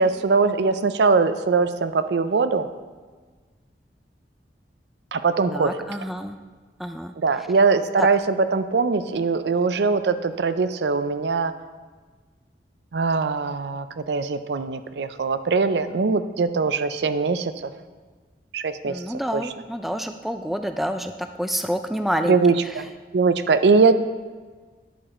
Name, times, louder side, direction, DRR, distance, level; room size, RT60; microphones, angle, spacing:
voice 1, 0.0-2.7 5.1-5.9 7.2-11.5 12.9-17.7 18.5-19.0 19.3-19.4 22.2-22.8 23.1-23.9, right 4 dB, 75° right, 11 dB, 0.5 m, -21 dB
voice 2, 5.5-6.4 6.8-7.1 8.0-8.1 18.9-21.1 21.4-22.4, equal, ahead, 7 dB, 0.3 m, -28 dB
10.0 x 6.8 x 4.2 m, 1.4 s
head